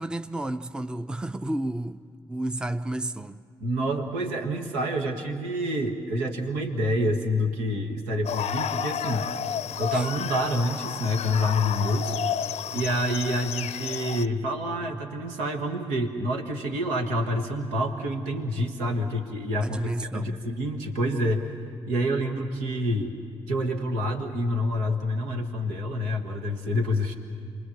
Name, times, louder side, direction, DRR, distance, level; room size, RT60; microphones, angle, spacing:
voice 1, 0.0-2.0 2.3-3.4 9.9-10.1 19.6-20.4, right 1 dB, 5° right, 0.6 m, -31 dB
voice 2, 3.6-9.3 9.8-12.1 12.7-21.5 21.9-23.1 23.5-27.2, equal, 80° right, 1.5 m, -27 dB
sound 1, 8.2-14.3, left 9 dB, 55° left, 0.6 m, -31 dB
27.5 x 21.0 x 7.2 m
hypercardioid pair, 40°, 13 cm